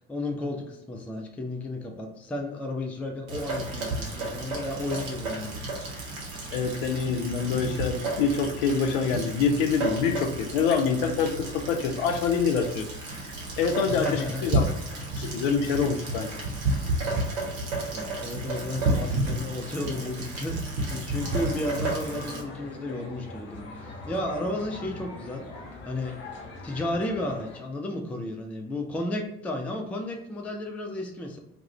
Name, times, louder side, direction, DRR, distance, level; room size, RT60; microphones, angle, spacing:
voice 1, 0.0-5.7 13.9-14.6 17.9-25.4 25.8-26.2 26.6-31.4, left 1 dB, 5° left, 2 dB, 0.3 m, -33 dB
Rain, 3.3-22.4, right 2 dB, 60° right, 0.8 m, -31 dB
voice 2, 6.5-12.8 13.6-14.6 15.2-16.3, left 5 dB, 60° left, 5 dB, 0.5 m, -26 dB
sound 1, 21.1-27.6, left 3 dB, 35° left, 0.8 m, -42 dB
2.3 x 2.1 x 2.9 m, 0.82 s
figure-of-eight pair, 55°, 31 cm